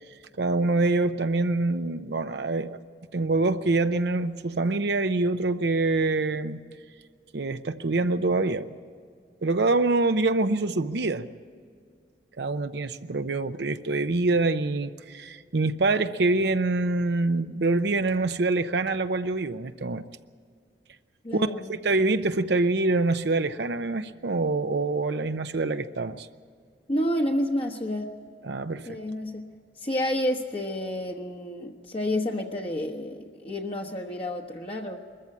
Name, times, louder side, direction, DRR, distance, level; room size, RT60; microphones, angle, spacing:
voice 1, 0.4-2.8 3.1-6.6 7.3-8.7 9.4-11.3 12.4-20.0 21.3-26.3 28.4-29.0, right 3 dB, 65° right, 9 dB, 0.7 m, -25 dB
voice 2, 21.2-21.7 26.9-28.1 28.9-29.5 29.8-35.0, left 1 dB, 35° left, 1 dB, 1.1 m, -29 dB
21.5 x 14.5 x 8.7 m, 2.1 s
head